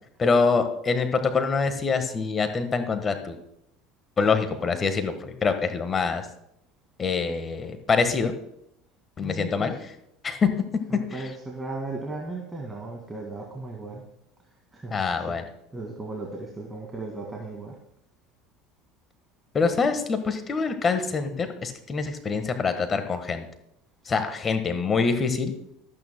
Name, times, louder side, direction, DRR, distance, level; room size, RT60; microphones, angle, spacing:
voice 1, 0.2-3.4 4.2-6.2 7.0-8.3 9.2-9.7 10.2-10.5 11.1-11.2 14.9-15.4 19.5-23.4 24.1-25.5, left 4 dB, 30° left, 8 dB, 1.4 m, -25 dB
voice 2, 9.2-9.8 10.9-14.0 14.7-15.0 15.3-15.4 15.7-17.8, right 2 dB, 15° right, -1 dB, 2.1 m, -36 dB
24.5 x 8.9 x 2.2 m, 0.78 s
hypercardioid pair, 80°, 0 cm